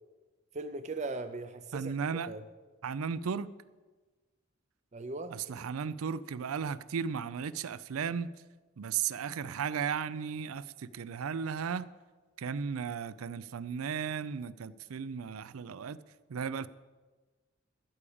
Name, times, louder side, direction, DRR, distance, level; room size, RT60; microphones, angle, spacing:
voice 1, 0.5-2.4 4.9-5.3, right 3 dB, 35° right, 0.4 m, -39 dB
voice 2, 1.7-2.3 2.8-3.5 5.3-8.3 8.8-11.9 12.4-16.0 16.3-16.7, right 6 dB, 90° right, 0.4 m, -35 dB
13.0 x 5.0 x 8.6 m
head